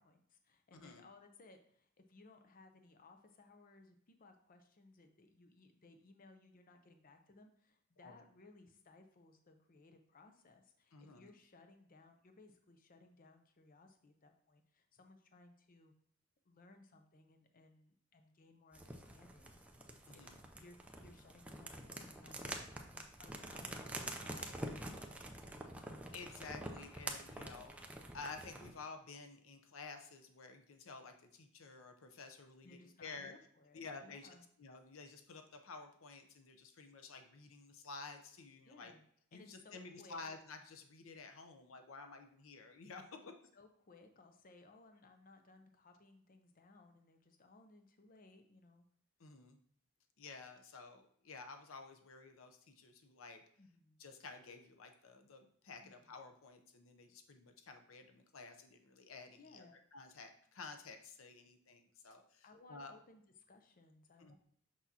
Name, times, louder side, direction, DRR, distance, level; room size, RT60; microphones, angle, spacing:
voice 1, 0.0-15.9 16.5-20.2 20.6-22.7 23.2-25.2 32.6-34.5 38.6-39.0 39.3-40.2 43.5-48.8 53.6-54.0 55.8-56.1 59.4-59.8 62.4-64.3, left 3 dB, 45° left, 6 dB, 0.6 m, -62 dB
voice 2, 0.7-1.0 8.0-8.2 10.9-11.3 20.1-20.4 26.1-27.9 28.1-33.3 33.7-34.3 34.6-38.9 39.3-43.2 49.2-49.6 50.2-53.4 54.0-59.7 59.9-62.9 64.2-64.3, left 4 dB, 90° left, 6 dB, 0.7 m, -52 dB
sound 1, 18.7-28.8, right 1 dB, 5° right, 0.5 m, -47 dB
6.0 x 5.7 x 2.8 m, 0.64 s
head